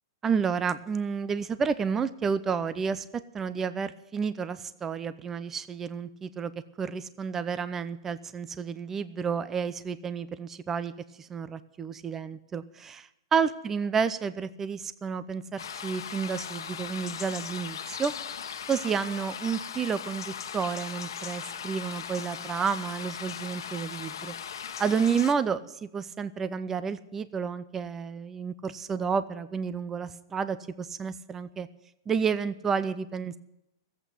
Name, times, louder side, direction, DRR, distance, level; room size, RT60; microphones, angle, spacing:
voice 1, 0.2-6.5 6.8-10.9 11.2-18.1 18.7-31.7 32.1-33.4, right 6 dB, 15° right, 14 dB, 0.6 m, -31 dB
sound 1, 15.6-25.3, left 8 dB, 90° left, 1.2 m, -38 dB
15.0 x 8.2 x 9.1 m, 0.83 s
hypercardioid pair, 155°, 2 cm